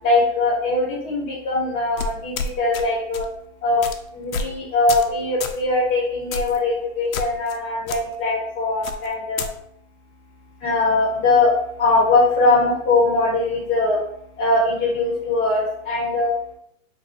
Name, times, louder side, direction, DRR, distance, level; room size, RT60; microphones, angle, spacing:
voice 1, 0.0-3.3 3.6-3.8 4.1-9.4 10.6-11.5 11.8-14.0 14.4-16.3, left 2 dB, 20° left, -8 dB, 1.4 m, -21 dB
sound 1, 2.0-2.8 3.1-3.3 3.8-4.0 4.3-4.6 4.9-5.1 5.4-5.6 6.3-6.6 7.1-7.6 7.9-8.0 8.8-9.5, left 5 dB, 80° left, 0.6 m, -29 dB
3.2 x 2.6 x 4.1 m, 0.71 s
hypercardioid pair, 165°, 41 cm